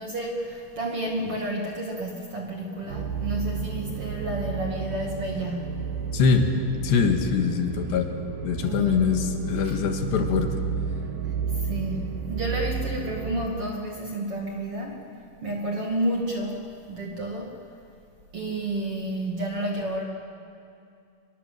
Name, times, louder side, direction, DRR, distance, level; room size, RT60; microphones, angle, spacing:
voice 1, 0.0-5.9 8.6-9.2 9.6-9.8 11.6-15.0 15.4-17.5 18.3-20.0, right 1 dB, 40° right, -1 dB, 2.4 m, -31 dB
sound 1, 2.9-13.5, right 6 dB, 70° right, 2.2 m, -32 dB
voice 2, 6.1-6.5 6.8-8.1 8.4-10.7, left 6 dB, 75° left, 4 dB, 3.7 m, -23 dB
25.5 x 23.0 x 7.8 m, 2.4 s
omnidirectional pair, 5.1 m